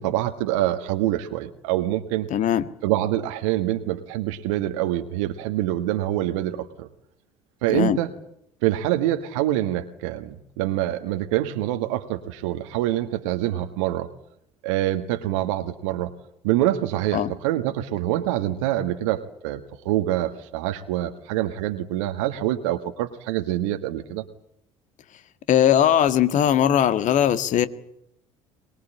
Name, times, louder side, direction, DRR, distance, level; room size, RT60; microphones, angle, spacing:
voice 1, 0.0-2.3 2.8-6.9 7.6-8.1 8.6-14.1 14.6-16.1 16.4-24.2, right 14 dB, 70° right, 1.5 m, -25 dB
voice 2, 2.3-2.6 7.7-8.0 17.1-17.3 25.5-27.7, left 10 dB, 50° left, 1.7 m, -19 dB
23.0 x 21.5 x 8.7 m
figure-of-eight pair, 60°, 17 cm